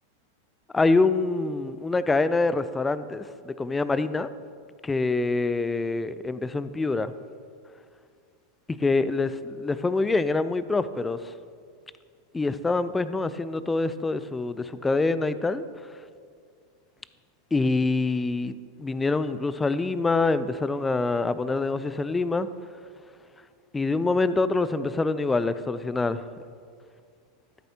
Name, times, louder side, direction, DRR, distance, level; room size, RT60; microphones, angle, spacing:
voice 1, 0.7-4.3 4.8-7.1 8.8-11.3 12.3-15.6 17.5-22.5 23.7-26.2, left 3 dB, 15° left, 14 dB, 0.4 m, -25 dB
13.0 x 8.0 x 2.8 m, 2.2 s
hypercardioid pair, 100°, 0 cm